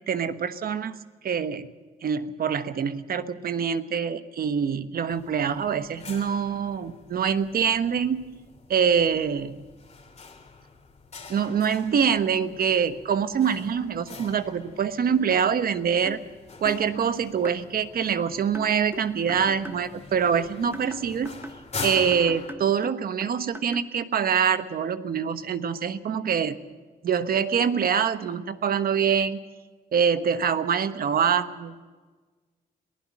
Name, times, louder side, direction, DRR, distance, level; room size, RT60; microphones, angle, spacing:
voice 1, 0.1-0.9 1.2-1.7 2.0-8.2 8.7-9.6 11.3-16.2 16.6-21.4 21.8-26.8 27.0-29.4 29.9-31.7, right 7 dB, 65° right, 10 dB, 1.2 m, -25 dB
sound 1, 5.1-22.5, left 4 dB, 40° left, 3.3 m, -44 dB
sound 2, 15.3-15.5 16.1-16.3 16.6-16.9 17.4-17.6 18.5-19.9 20.4-23.9, right 1 dB, 15° right, 1.4 m, -40 dB
22.5 x 15.5 x 7.4 m, 1.3 s
cardioid pair, 100°, 17 cm